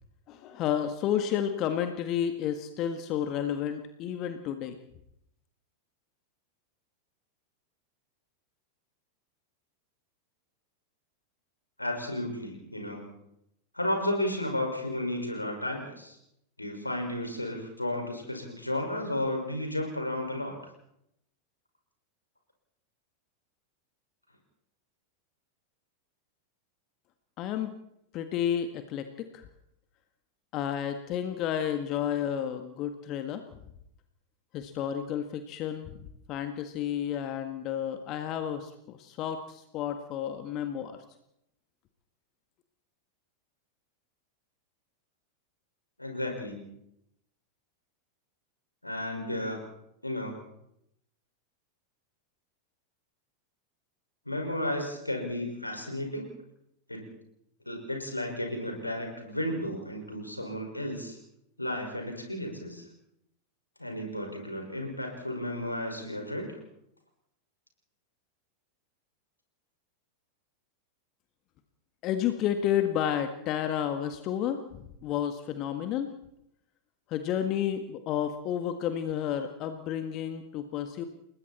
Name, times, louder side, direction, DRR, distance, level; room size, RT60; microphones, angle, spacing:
voice 1, 0.3-4.8 27.4-27.7 28.1-29.5 30.5-33.4 34.5-41.0 72.0-76.1 77.1-81.0, left 9 dB, 35° left, 8 dB, 1.7 m, -31 dB
voice 2, 11.8-13.1 13.7-16.2 16.6-20.5 46.0-46.6 48.8-49.7 50.0-50.4 54.3-56.3 56.9-57.1 57.7-61.2 61.6-62.8 63.8-66.6, left 1 dB, 85° left, 2 dB, 5.5 m, -33 dB
29.5 x 21.0 x 4.3 m, 0.79 s
figure-of-eight pair, 90°, 0 cm